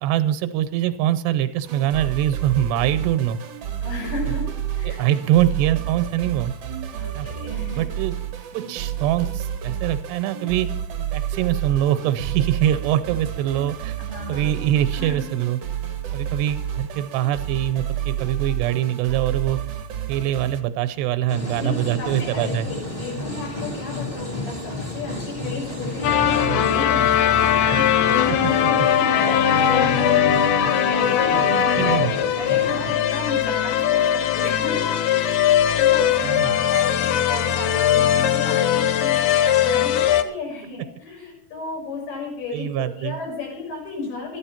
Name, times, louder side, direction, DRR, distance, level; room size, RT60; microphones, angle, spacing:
voice 1, 0.0-3.4 4.8-6.5 7.1-7.3 7.8-8.1 8.5-10.7 11.1-14.0 14.3-15.6 16.1-19.6 20.1-22.7 26.4-26.6 28.3-28.4 28.6-28.7 31.3-32.1 36.2-36.5 42.5-43.2, right 12 dB, 85° right, 12 dB, 3.0 m, -23 dB
sound 1, 1.6-20.6, right 10 dB, 60° right, 1.6 m, -30 dB
voice 2, 3.8-5.1 7.0-7.9 14.0-15.2 21.6-44.4, left 3 dB, 70° left, -1 dB, 7.9 m, -34 dB
sound 2, 21.3-32.9, left 2 dB, 10° left, 1.6 m, -32 dB
sound 3, 26.0-40.2, left 9 dB, 85° left, 1.7 m, -20 dB
13.5 x 12.0 x 5.8 m, 0.62 s
omnidirectional pair, 4.7 m